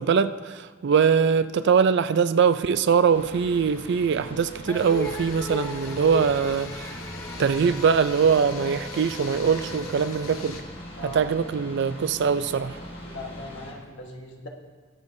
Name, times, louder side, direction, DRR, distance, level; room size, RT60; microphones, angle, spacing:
voice 1, 0.0-7.0 7.4-10.6 11.0-12.8, right 6 dB, 55° right, 13 dB, 0.4 m, -22 dB
sound 1, 3.1-13.7, equal, 25° left, 1.3 m, -41 dB
sound 2, 4.7-10.6, left 3 dB, 90° left, 1.1 m, -41 dB
sound 3, 4.7-11.2, left 1 dB, 10° left, 0.5 m, -38 dB
voice 2, 11.0-11.3 13.0-14.5, left 1 dB, 60° left, 1 dB, 1.3 m, -39 dB
21.0 x 7.2 x 2.6 m, 1.5 s
head